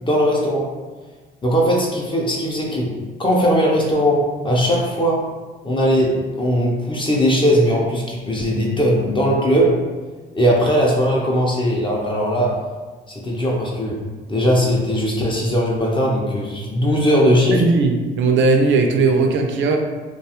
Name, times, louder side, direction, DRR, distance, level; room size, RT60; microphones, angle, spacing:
voice 1, 0.0-0.7 1.4-2.9 3.2-5.2 5.6-9.8 10.3-12.6 13.1-14.0 14.3-17.6, equal, 25° left, -3 dB, 0.5 m, -19 dB
voice 2, 17.5-19.8, right 3 dB, 70° right, 4 dB, 0.4 m, -17 dB
2.4 x 2.3 x 2.8 m, 1.3 s
cardioid pair, 90°, 20 cm